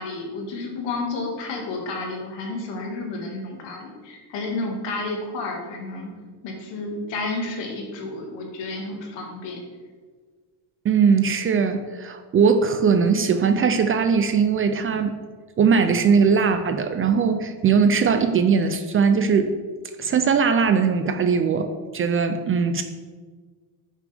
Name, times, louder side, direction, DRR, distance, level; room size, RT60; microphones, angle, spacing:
voice 1, 0.0-6.1 6.4-9.6, left 2 dB, 75° left, 1 dB, 2.1 m, -31 dB
voice 2, 10.8-15.2 15.6-19.5 20.0-22.8, right 6 dB, 30° right, 8 dB, 0.5 m, -20 dB
10.0 x 6.5 x 3.5 m, 1.5 s
cardioid pair, 140°, 44 cm